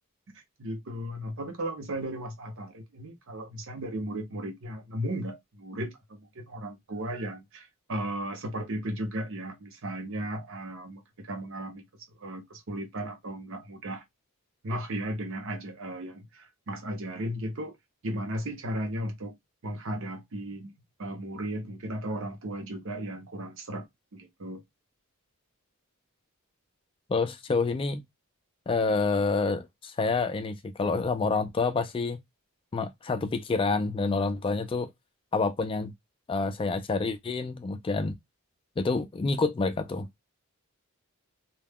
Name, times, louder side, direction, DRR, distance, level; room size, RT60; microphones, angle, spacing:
voice 1, 0.3-11.9 12.2-14.0 14.6-17.8 18.0-19.3 19.6-20.7 21.0-23.9 24.1-24.6, right 1 dB, 60° right, 0.8 m, -35 dB
voice 2, 27.1-28.0 28.7-32.2 32.7-34.9 35.3-35.9 36.3-38.2 38.8-40.1, left 4 dB, 25° left, 0.3 m, -28 dB
2.3 x 2.1 x 3.4 m
head